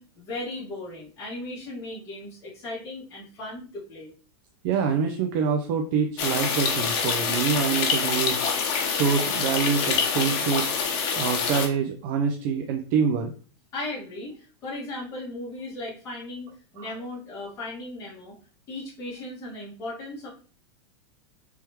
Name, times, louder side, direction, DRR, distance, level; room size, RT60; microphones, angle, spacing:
voice 1, 0.0-4.1 13.7-18.4 18.7-20.3, left 2 dB, 25° left, -11 dB, 2.0 m, -37 dB
voice 2, 4.6-8.4 8.9-10.7 11.2-13.3 16.8-16.9, right 6 dB, 50° right, 4 dB, 0.6 m, -25 dB
sound 1, 6.2-11.7, left 5 dB, 45° left, 1.2 m, -26 dB
4.6 x 3.5 x 3.0 m, 0.40 s
supercardioid pair, 150°, 13 cm